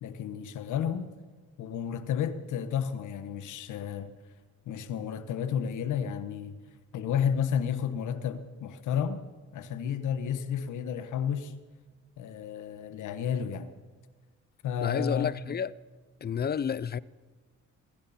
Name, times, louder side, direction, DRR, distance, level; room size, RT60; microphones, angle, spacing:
voice 1, 0.0-1.1 1.6-4.1 4.7-6.5 6.9-9.2 9.5-11.5 12.2-13.7 14.6-15.4, left 8 dB, 80° left, 1.3 m, -31 dB
voice 2, 14.8-15.7 16.2-17.0, left 7 dB, 35° left, 0.5 m, -30 dB
20.0 x 16.0 x 4.3 m
cardioid pair, 90°, 30 cm